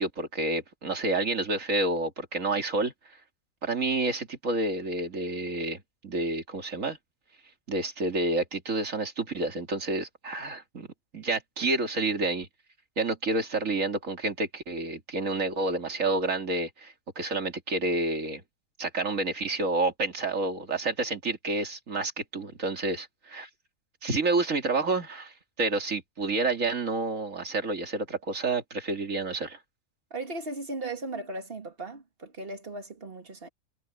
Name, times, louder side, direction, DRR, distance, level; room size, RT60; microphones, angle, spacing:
voice 1, 0.0-2.9 3.6-7.0 7.7-10.9 11.1-12.5 13.0-18.4 18.8-23.5 24.0-29.6, right 2 dB, 60° right, 2.9 m, -29 dB
voice 2, 30.1-33.5, right 2 dB, 40° right, 2.3 m, -37 dB
omnidirectional pair, 1.5 m